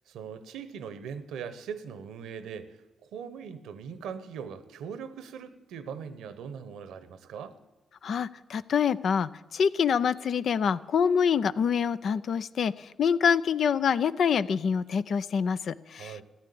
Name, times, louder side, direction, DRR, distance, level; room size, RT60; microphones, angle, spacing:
voice 1, 0.1-2.8 3.1-7.6 16.0-16.2, right 7 dB, 75° right, 1.0 m, -40 dB
voice 2, 8.0-16.2, left 7 dB, 65° left, 0.5 m, -26 dB
15.0 x 9.7 x 8.5 m
hypercardioid pair, 40°, 0 cm